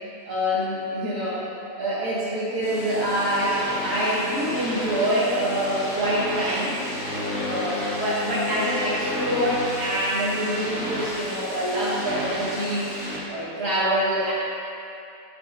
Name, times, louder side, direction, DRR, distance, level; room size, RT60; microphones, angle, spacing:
voice 1, 0.2-1.5 1.8-6.7 7.4-14.3, equal, 60° right, -9 dB, 2.5 m, -25 dB
sound 1, 2.6-13.2, equal, 75° left, 2.5 m, -33 dB
Bowed string instrument, 6.9-10.1, left 5 dB, 45° left, 0.9 m, -34 dB
11.0 x 6.3 x 2.7 m, 2.6 s
omnidirectional pair, 1.9 m